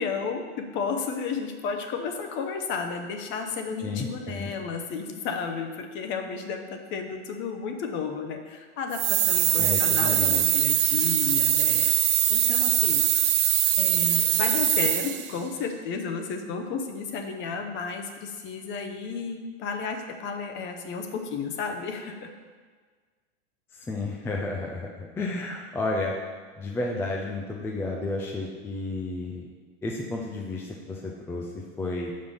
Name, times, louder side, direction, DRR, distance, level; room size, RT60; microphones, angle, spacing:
voice 1, 0.0-13.0 13.8-22.3, left 5 dB, 35° left, 5 dB, 0.8 m, -33 dB
voice 2, 3.8-4.5 9.6-10.4 23.7-26.2 26.6-29.5 29.8-31.5 31.8-32.1, left 2 dB, 5° left, -1 dB, 0.4 m, -32 dB
sound 1, 8.9-15.3, right 11 dB, 85° right, 0.7 m, -22 dB
5.9 x 5.2 x 5.5 m, 1.5 s
supercardioid pair, 135°, 34 cm